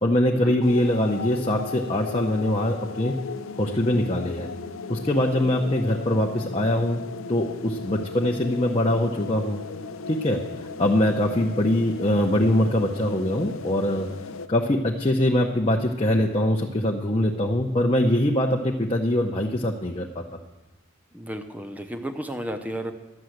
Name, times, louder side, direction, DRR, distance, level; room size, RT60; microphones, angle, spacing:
voice 1, 0.0-3.1 3.6-4.5 4.9-7.0 7.3-9.6 10.1-10.4 10.8-14.1 14.5-20.2, left 1 dB, 25° left, 0 dB, 0.8 m, -23 dB
sound 1, 0.6-14.5, left 4 dB, 75° left, 0.5 m, -36 dB
voice 2, 21.1-22.9, right 1 dB, 10° right, 7 dB, 0.7 m, -33 dB
11.5 x 7.0 x 7.8 m, 1.1 s
head